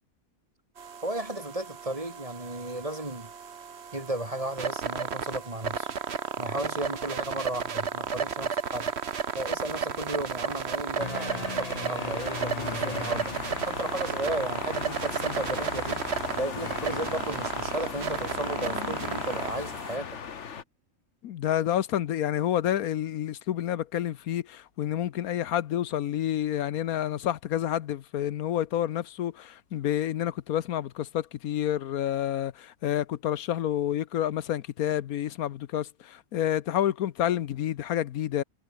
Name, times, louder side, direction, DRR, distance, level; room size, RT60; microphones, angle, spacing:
sound 1, 0.8-20.0, right 6 dB, 50° right, 1.4 m, -33 dB
voice 1, 1.0-3.3 3.9-5.9 6.4-8.9 9.3-20.2, right 1 dB, 25° right, 3.3 m, -34 dB
sound 2, 11.0-17.7, left 5 dB, 30° left, 0.9 m, -41 dB
sound 3, 12.0-20.6, left 7 dB, 55° left, 1.5 m, -38 dB
voice 2, 21.2-38.4, left 11 dB, 80° left, 1.3 m, -29 dB
omnidirectional pair, 1.5 m